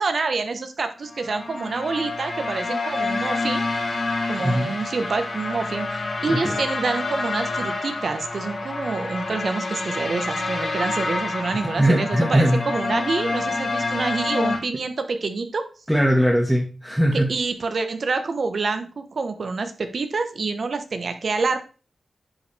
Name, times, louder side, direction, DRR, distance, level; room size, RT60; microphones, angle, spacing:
voice 1, 0.0-3.6 4.3-15.6 17.1-21.6, right 4 dB, 65° right, 8 dB, 1.2 m, -27 dB
sound 1, 1.1-14.6, left 3 dB, 65° left, 2.6 m, -28 dB
voice 2, 11.8-12.6 15.9-17.3, equal, 5° right, -2 dB, 1.8 m, -20 dB
10.5 x 5.3 x 3.4 m, 0.35 s
cardioid pair, 60°, 0 cm